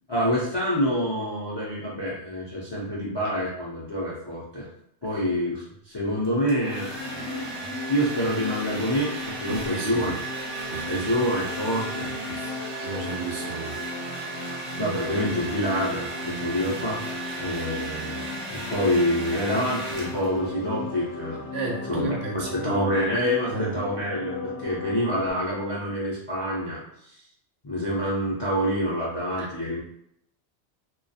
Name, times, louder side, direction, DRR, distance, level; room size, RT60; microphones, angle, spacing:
voice 1, 0.1-4.7 5.0-10.2 10.8-12.8 14.8-17.1 17.4-21.4 21.9-22.1 22.3-26.8 27.6-29.8, equal, 45° left, -7 dB, 0.3 m, -27 dB
Domestic sounds home sounds, 6.2-20.5, right 2 dB, 45° right, 0.5 m, -36 dB
sound 1, 6.6-25.3, left 2 dB, 60° left, 0.7 m, -36 dB
voice 2, 9.5-10.1 10.7-11.1 12.3-12.5 12.8-13.8 21.5-22.9 23.5-23.9 29.4-29.5, right 3 dB, 70° right, 0 dB, 0.9 m, -33 dB
2.3 x 2.2 x 2.6 m, 0.75 s
omnidirectional pair, 1.2 m